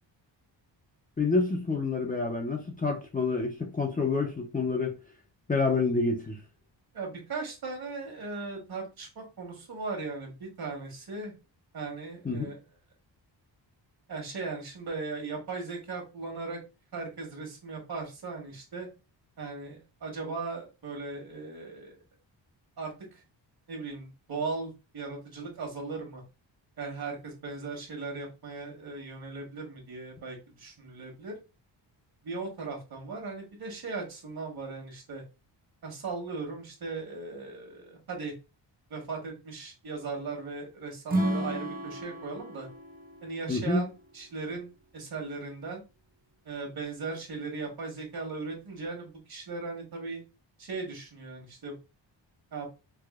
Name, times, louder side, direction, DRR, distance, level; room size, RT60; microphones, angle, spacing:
voice 1, 1.2-5.0 5.5-6.4 12.2-12.5 43.5-43.9, left 3 dB, 20° left, 0.6 m, -28 dB
voice 2, 6.9-11.3 11.7-12.6 14.1-16.6 16.9-18.9 19.4-21.9 22.8-23.2 23.7-26.2 26.8-31.3 32.2-35.2 35.8-38.3 38.9-42.7 43.2-43.9 44.1-45.8 46.4-50.2 50.6-51.8 52.5-52.7, right 4 dB, 55° right, 1.5 m, -38 dB
Acoustic guitar / Strum, 41.1-44.4, right 1 dB, 20° right, 0.6 m, -33 dB
4.7 x 2.4 x 2.4 m
wide cardioid pair, 145°, 45 cm